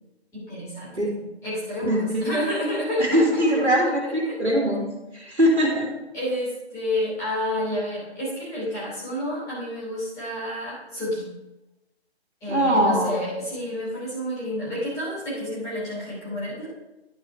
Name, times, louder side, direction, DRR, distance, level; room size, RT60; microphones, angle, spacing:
voice 1, 0.3-4.4 5.1-5.4 6.1-11.3 12.4-16.7, equal, 10° left, -9 dB, 3.0 m, -30 dB
voice 2, 1.9-2.3 3.0-5.9 12.5-13.2, equal, 75° right, -1 dB, 2.3 m, -22 dB
11.5 x 5.2 x 4.4 m, 1.0 s
figure-of-eight pair, 145°, 33 cm